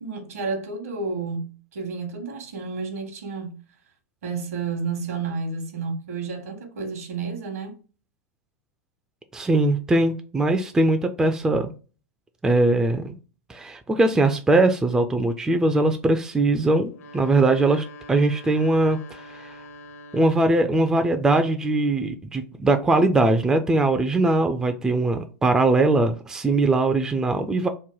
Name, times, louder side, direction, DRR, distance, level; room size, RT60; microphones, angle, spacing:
voice 1, 0.0-3.5 4.2-7.8, right 4 dB, 70° right, 0.9 m, -31 dB
voice 2, 9.3-11.7 12.4-13.2 13.5-19.6 20.1-27.7, right 2 dB, 10° right, 0.3 m, -21 dB
sound 1, 16.9-20.9, left 1 dB, 65° left, 0.8 m, -44 dB
3.0 x 2.1 x 3.8 m
figure-of-eight pair, 95°, 8 cm